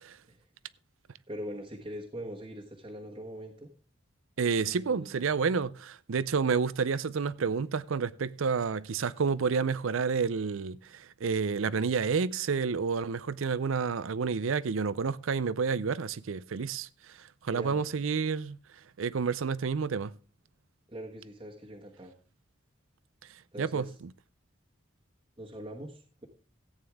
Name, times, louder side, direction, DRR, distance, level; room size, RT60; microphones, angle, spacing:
voice 1, 1.3-3.7 4.6-5.2 17.5-17.8 20.9-22.1 23.5-23.9 25.4-26.3, equal, 25° right, 1.3 m, -42 dB
voice 2, 4.4-16.9 17.4-18.6 19.0-20.1 23.6-23.9, right 5 dB, 85° right, 0.5 m, -29 dB
14.5 x 9.0 x 3.5 m
head